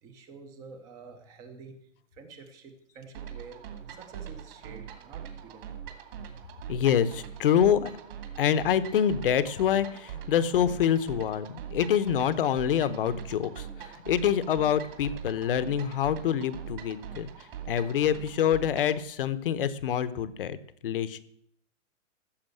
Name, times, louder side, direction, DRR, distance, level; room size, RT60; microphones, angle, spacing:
voice 1, 0.0-3.6 3.9-5.7, right 4 dB, 10° right, 8 dB, 0.6 m, -48 dB
sound 1, 3.1-19.0, right 9 dB, 45° right, 2.3 m, -42 dB
voice 2, 6.7-8.0 8.4-17.3 17.7-20.6 20.8-21.2, left 9 dB, 45° left, 14 dB, 0.9 m, -26 dB
15.0 x 6.9 x 7.8 m, 0.68 s
hypercardioid pair, 165°, 39 cm